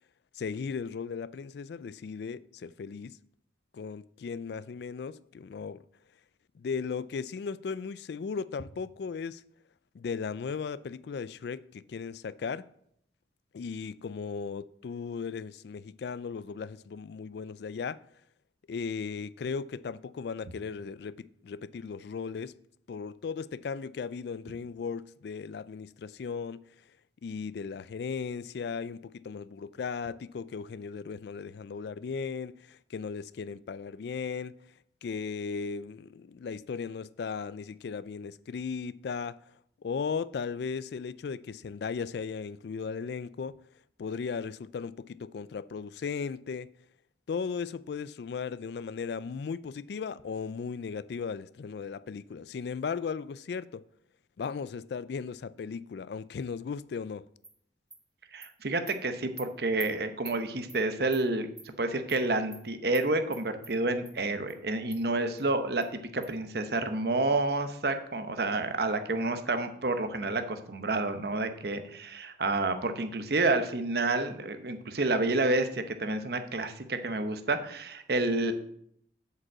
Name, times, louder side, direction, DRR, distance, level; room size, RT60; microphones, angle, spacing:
voice 1, 0.3-3.2 3.7-5.8 6.6-9.4 9.9-12.7 13.5-18.0 18.7-22.5 22.9-26.6 27.2-34.6 35.0-39.4 39.8-43.6 44.0-46.7 47.3-53.8 54.4-57.3, left 5 dB, 65° left, 0.3 m, -36 dB
Animal, 57.4-57.5 57.9-58.0 58.4-58.5 58.9-59.0 59.4-59.5 59.8-59.9 60.3-60.4 60.7-60.8 61.1-61.2 61.6-61.7 62.1-62.2 62.5-62.6 62.9-63.1 63.3-63.7 64.1-64.2 64.5-64.6 64.9-65.0 65.4-65.5 65.8-65.9 66.2-66.3, right 2 dB, 5° right, 0.7 m, -45 dB
voice 2, 58.3-61.5 61.8-78.5, right 2 dB, 60° right, 0.8 m, -29 dB
8.0 x 5.2 x 7.5 m
head